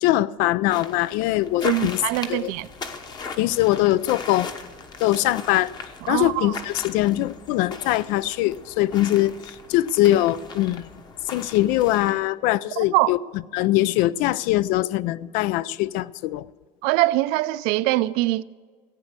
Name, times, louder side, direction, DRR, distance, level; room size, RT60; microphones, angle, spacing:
voice 1, 0.0-2.0 2.3-2.5 3.4-4.5 5.0-5.7 6.1-10.9 11.3-13.2 13.5-16.5, left 15 dB, 65° left, 0.4 m, -22 dB
sound 1, 0.7-12.3, left 4 dB, 30° left, 1.0 m, -38 dB
voice 2, 1.6-2.7 6.0-6.5 12.9-13.1 16.8-18.4, right 18 dB, 75° right, 0.5 m, -23 dB
15.0 x 9.1 x 6.7 m
cardioid pair, 160°, 15 cm